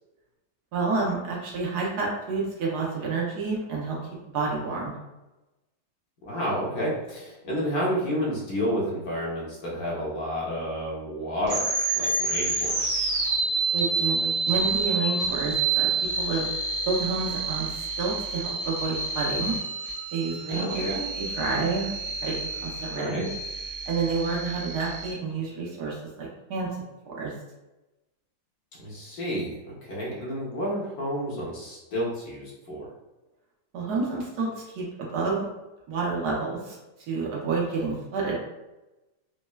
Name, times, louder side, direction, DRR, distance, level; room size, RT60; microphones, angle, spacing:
voice 1, 0.7-4.0 4.3-5.0 13.7-15.9 16.2-16.5 16.9-19.6 20.1-21.9 22.2-23.3 23.9-26.7 27.1-27.3 33.7-35.5 35.9-36.8 37.1-38.4, right 4 dB, 75° right, -3 dB, 1.3 m, -29 dB
voice 2, 6.2-11.6 11.9-13.1 20.5-21.1 22.9-23.2 28.8-32.9, equal, 70° left, -5 dB, 1.4 m, -30 dB
sound 1, 11.4-25.1, right 3 dB, 45° right, 0.6 m, -29 dB
4.1 x 2.1 x 2.2 m, 1.0 s
omnidirectional pair, 1.8 m